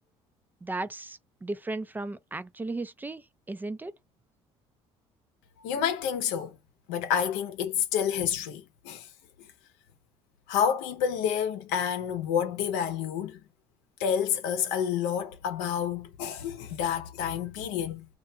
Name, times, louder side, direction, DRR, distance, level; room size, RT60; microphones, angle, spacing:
voice 1, 0.6-3.2 3.5-3.9, right 2 dB, 15° right, 0.3 m, -35 dB
voice 2, 5.6-6.6 6.9-9.1 10.5-13.4 14.0-18.1, left 8 dB, 85° left, 0.7 m, -29 dB
2.4 x 2.2 x 2.7 m
supercardioid pair, 80°, 13 cm